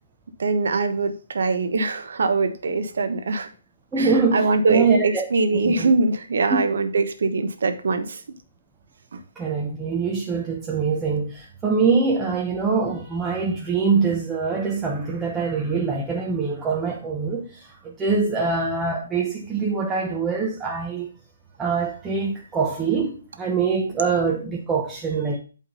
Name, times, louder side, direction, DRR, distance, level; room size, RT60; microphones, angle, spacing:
voice 1, 0.4-3.5 4.0-8.2 9.1-9.2, right 3 dB, 70° right, 1.1 m, -23 dB
voice 2, 3.9-5.3 5.5-5.9 9.4-21.1 21.6-25.4, right 4 dB, 15° right, 1.0 m, -24 dB
8.5 x 3.7 x 5.4 m
hypercardioid pair, 140°, 0 cm